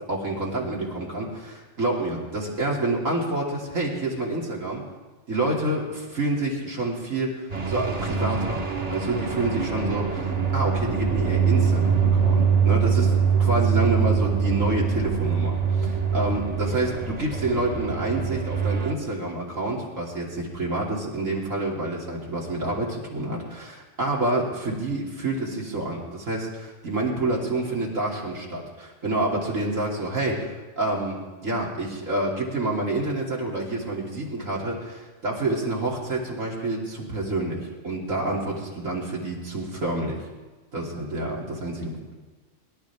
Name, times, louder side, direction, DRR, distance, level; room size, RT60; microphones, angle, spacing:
voice 1, 0.0-4.8 5.3-8.6 8.9-13.1 13.4-30.5 30.8-40.2 40.7-41.9, right 2 dB, 90° right, -3 dB, 3.3 m, -28 dB
sound 1, 7.5-18.9, right 6 dB, 35° right, 1.2 m, -24 dB
25.5 x 12.0 x 3.6 m, 1.3 s
omnidirectional pair, 1.3 m